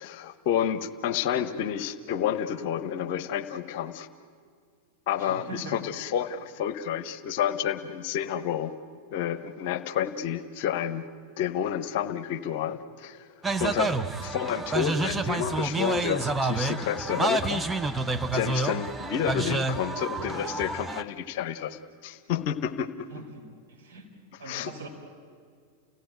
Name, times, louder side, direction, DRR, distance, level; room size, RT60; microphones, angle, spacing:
voice 1, 0.0-4.1 5.1-8.7 9.1-11.0 11.4-13.3 13.6-18.0 18.3-22.9 24.4-24.7, left 9 dB, 50° left, 11 dB, 1.0 m, -30 dB
voice 2, 5.2-5.8 23.1-24.1 24.4-24.9, right 3 dB, 65° right, -1 dB, 5.0 m, -42 dB
sound 1, 13.4-21.0, right 3 dB, 10° right, 0.8 m, -29 dB
30.0 x 17.0 x 9.1 m, 2.1 s
figure-of-eight pair, 90°, 0 cm